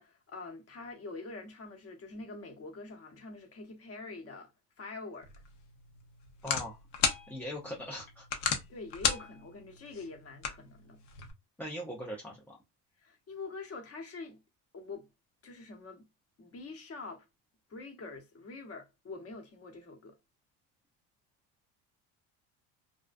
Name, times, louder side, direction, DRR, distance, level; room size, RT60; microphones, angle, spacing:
voice 1, 0.0-4.5 4.8-5.3 8.7-11.0 13.0-14.4 14.7-15.1 15.4-16.0 16.4-17.2 17.7-20.1, left 3 dB, 35° left, 0.8 m, -45 dB
sound 1, 5.2-11.3, left 7 dB, 65° left, 0.7 m, -36 dB
voice 2, 6.4-6.8 7.3-8.4 11.6-12.6, equal, 5° left, 0.3 m, -40 dB
2.4 x 2.1 x 2.4 m
supercardioid pair, 90°, 45 cm